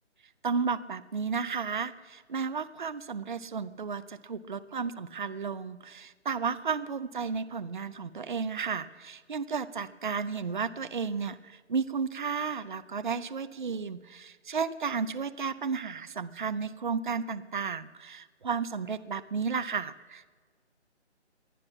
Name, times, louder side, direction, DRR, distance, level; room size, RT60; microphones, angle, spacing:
voice 1, 0.4-20.3, right 5 dB, 45° right, 14 dB, 0.6 m, -33 dB
20.0 x 11.5 x 5.8 m, 1.5 s
hypercardioid pair, 170°, 35 cm